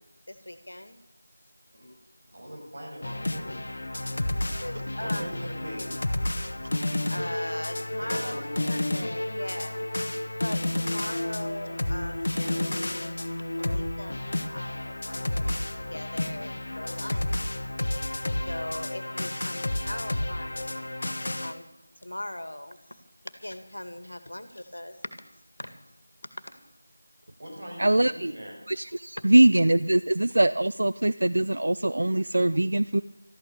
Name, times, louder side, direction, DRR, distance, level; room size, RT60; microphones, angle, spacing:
voice 1, 0.3-1.0 4.6-5.3 7.1-9.8 10.1-13.2 13.5-17.6 18.3-20.8 21.4-21.7 22.0-23.0 23.4-25.0 25.6-25.7 26.4-26.5 29.2-29.3, left 1 dB, 75° left, 10 dB, 2.0 m, -40 dB
voice 2, 2.3-3.6 5.0-5.9 8.0-8.8 15.0-15.2 27.4-28.5, equal, 45° right, 0 dB, 6.5 m, -40 dB
sound 1, 3.0-21.5, left 1 dB, 50° left, 1.3 m, -31 dB
voice 3, 27.8-28.3 28.7-33.0, right 1 dB, 65° right, 15 dB, 0.4 m, -22 dB
13.5 x 12.5 x 7.0 m, 0.88 s
figure-of-eight pair, 170°, 0 cm